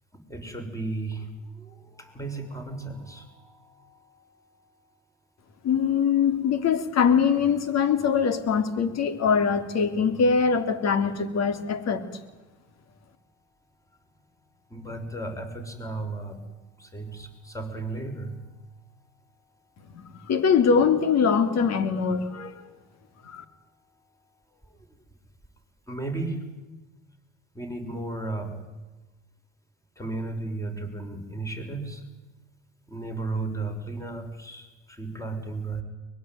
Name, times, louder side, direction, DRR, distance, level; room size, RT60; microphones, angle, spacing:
voice 1, 0.3-4.4 14.7-16.4 16.8-18.4 25.9-26.4 27.5-28.6 30.0-32.0 32.9-35.8, right 3 dB, 10° left, 5 dB, 6.4 m, -34 dB
voice 2, 5.6-12.0 19.9-22.6 23.2-23.4, left 6 dB, 55° left, 11 dB, 3.3 m, -23 dB
23.5 x 22.0 x 9.5 m, 1.1 s
supercardioid pair, 90°, 32 cm